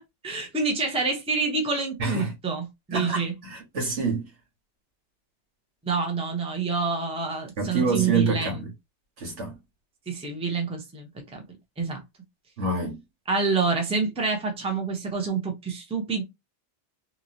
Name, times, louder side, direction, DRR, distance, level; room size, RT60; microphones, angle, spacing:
voice 1, 0.2-3.3 5.8-8.6 10.1-11.4 11.8-12.0 13.3-16.2, right 4 dB, 5° right, 0.6 m, -27 dB
voice 2, 2.0-2.3 2.9-4.3 7.6-8.7 9.2-9.5 12.6-13.0, right 3 dB, 80° right, 1.5 m, -27 dB
3.0 x 2.7 x 2.6 m
omnidirectional pair, 1.2 m